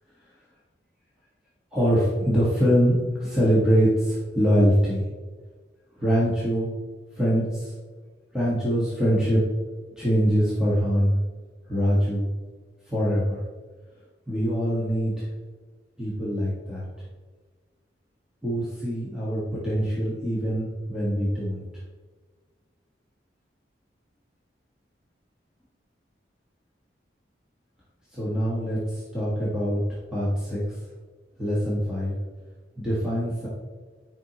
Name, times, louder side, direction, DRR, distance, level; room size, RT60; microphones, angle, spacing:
voice 1, 1.7-5.0 5.9-6.7 7.1-7.7 8.3-9.4 10.0-11.2 11.7-12.3 12.9-13.4 14.3-15.3 16.0-16.8 18.4-21.6 28.1-29.8 30.1-30.8 31.4-32.1 32.8-33.5, equal, 5° right, -9 dB, 1.5 m, -23 dB
9.8 x 5.3 x 3.0 m, 1.4 s
head